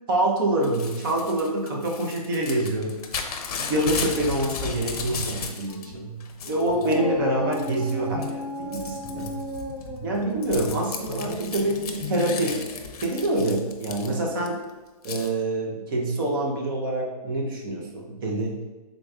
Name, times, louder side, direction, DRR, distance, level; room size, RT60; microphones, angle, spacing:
voice 1, 0.1-2.9 3.7-6.1 6.5-9.3 10.0-12.6 13.0-14.6 15.0-18.6, right 1 dB, 35° right, 0 dB, 0.7 m, -26 dB
Crumpling crinkling / Tearing, 0.6-5.9 6.2-7.0 7.5-7.9 8.2-14.5 15.0-15.3, left 5 dB, 65° left, 0.7 m, -35 dB
Guitar, 5.1-12.9, left 2 dB, 5° right, 0.9 m, -40 dB
Dog, 6.4-13.1, left 2 dB, 45° left, 1.3 m, -35 dB
5.0 x 3.7 x 2.3 m, 1.2 s
hypercardioid pair, 170°, 20 cm